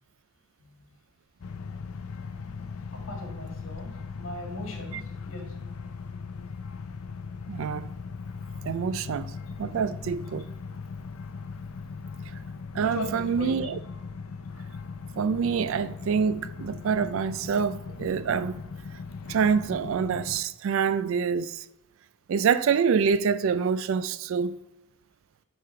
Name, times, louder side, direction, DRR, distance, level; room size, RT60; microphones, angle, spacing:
sound 1, 1.4-20.4, left 5 dB, 85° left, 0.5 m, -39 dB
voice 1, 2.9-5.5 12.8-13.6, left 2 dB, 70° left, 1.8 m, -39 dB
voice 2, 7.5-7.9 8.6-9.3 9.6-10.4 12.7-13.8 15.2-18.6 19.3-21.6 22.3-24.6, right 6 dB, 65° right, 0.3 m, -26 dB
9.4 x 3.4 x 4.4 m
head